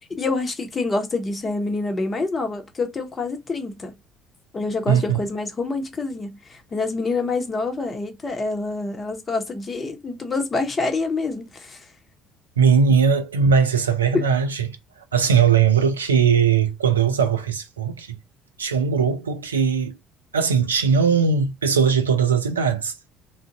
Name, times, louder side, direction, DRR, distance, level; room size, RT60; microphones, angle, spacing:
voice 1, 0.2-3.9 4.5-11.9 14.1-14.2, left 3 dB, 30° left, 0.9 m, -26 dB
voice 2, 4.9-5.2 12.6-14.8 15.1-18.2 18.6-20.0 20.3-22.9, right 6 dB, 85° right, 0.4 m, -19 dB
2.5 x 2.1 x 3.6 m
figure-of-eight pair, 55°, 0 cm